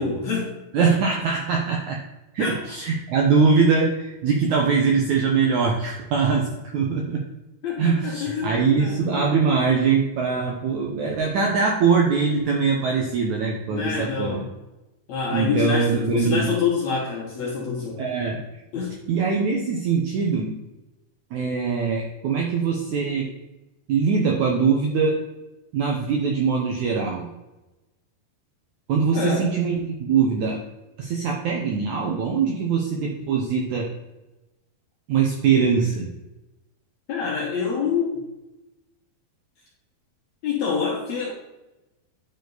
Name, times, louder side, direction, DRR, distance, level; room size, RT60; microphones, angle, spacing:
voice 1, 0.0-0.9 2.4-2.6 7.6-9.4 13.7-14.5 15.1-18.0 18.7-18.9 29.1-29.5 37.1-38.2 40.4-41.3, left 5 dB, 65° left, -2 dB, 1.9 m, -27 dB
voice 2, 0.7-2.0 2.3-6.5 6.7-7.2 7.8-14.4 15.3-16.5 18.0-18.4 19.1-20.6 21.3-23.3 23.9-25.2 25.7-27.3 28.9-30.6 31.0-33.9 35.1-36.1, right 5 dB, 75° right, 0 dB, 1.8 m, -22 dB
9.7 x 4.6 x 4.0 m, 1.0 s
omnidirectional pair, 4.5 m